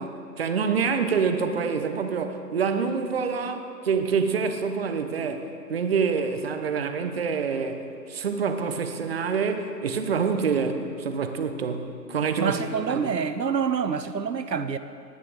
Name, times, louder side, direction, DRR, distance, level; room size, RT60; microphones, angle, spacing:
voice 1, 0.0-12.6 12.9-13.1, right 5 dB, 35° right, 7 dB, 1.0 m, -26 dB
voice 2, 12.4-14.8, right 6 dB, 85° right, 11 dB, 0.8 m, -27 dB
19.0 x 9.7 x 5.0 m, 2.5 s
figure-of-eight pair, 145°, 49 cm